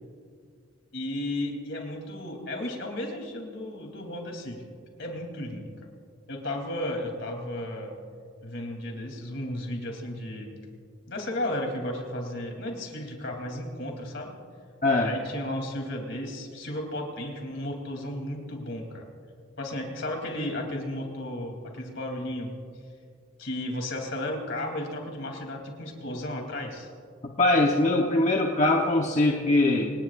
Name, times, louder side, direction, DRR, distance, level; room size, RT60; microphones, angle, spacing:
voice 1, 0.9-4.6 5.0-5.7 6.3-7.9 8.4-10.5 11.1-14.4 15.0-19.1 19.6-22.5 23.4-26.9, left 1 dB, 65° left, 2 dB, 3.2 m, -34 dB
voice 2, 14.8-15.1 27.2-29.9, left 2 dB, 40° left, 0 dB, 1.1 m, -22 dB
27.0 x 19.5 x 2.5 m, 2.2 s
head